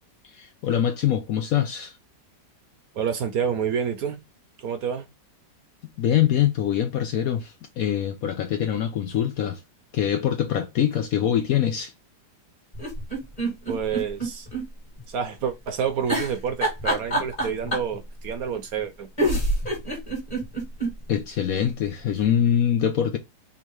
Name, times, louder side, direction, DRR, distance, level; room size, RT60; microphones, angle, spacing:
voice 1, 0.3-2.0 6.0-9.6 9.9-11.9 21.1-23.2, left 10 dB, 65° left, 0.9 m, -24 dB
voice 2, 2.9-4.2 4.6-5.1 13.7-14.5 15.1-19.1 19.9-20.0, right 7 dB, 65° right, 1.0 m, -28 dB
sound 1, 12.7-14.6 15.0-15.1 16.1-18.0 18.8-18.9 19.2-20.9 21.4-21.5 21.6-21.7, right 1 dB, 20° left, 2.0 m, -25 dB
3.6 x 2.9 x 4.5 m
omnidirectional pair, 1.9 m